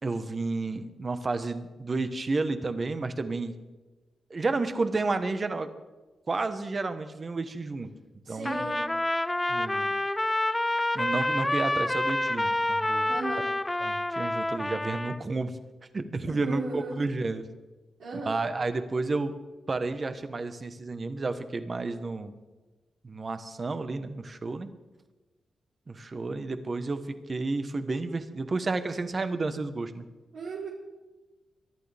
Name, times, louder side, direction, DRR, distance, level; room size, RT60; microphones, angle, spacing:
voice 1, 0.0-3.5 4.3-5.7 6.3-7.9 8.3-8.7 9.5-9.9 10.9-13.1 13.8-15.6 15.9-17.4 18.3-19.3 19.7-22.3 23.0-24.7 25.9-30.0, right 3 dB, 35° right, 9 dB, 1.2 m, -31 dB
voice 2, 8.3-8.9 13.1-13.4 16.3-17.1 18.0-18.5 30.3-30.7, right 2 dB, 85° right, -5 dB, 3.7 m, -36 dB
Trumpet, 8.4-15.2, left 1 dB, 15° left, 0.5 m, -28 dB
23.5 x 11.5 x 3.5 m, 1.2 s
cardioid pair, 95°, 0 cm